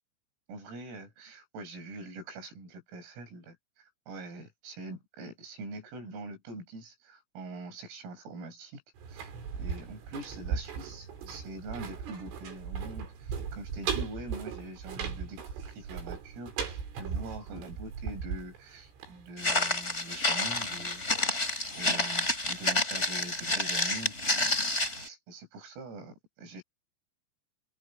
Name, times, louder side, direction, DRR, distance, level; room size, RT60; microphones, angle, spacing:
voice 1, 0.5-8.8 9.1-24.5 24.9-26.6, right 2 dB, 90° right, 10.5 m, -44 dB
sound 1, 9.0-19.8 20.1-20.2, right 6 dB, 65° right, 7.1 m, -37 dB
Walk footsteps, 19.4-25.1, left 2 dB, 15° left, 3.7 m, -29 dB
open air
omnidirectional pair, 6.0 m